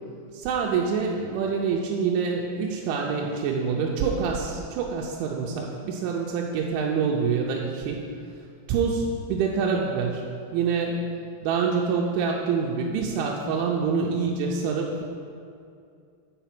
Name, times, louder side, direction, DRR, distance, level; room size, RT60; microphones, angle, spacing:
voice 1, 0.3-8.0 8.7-9.0 9.3-10.2 10.5-11.0 11.4-15.1, right 5 dB, 85° right, -1 dB, 3.0 m, -26 dB
8.9 x 5.7 x 5.9 m, 2.4 s
omnidirectional pair, 5.4 m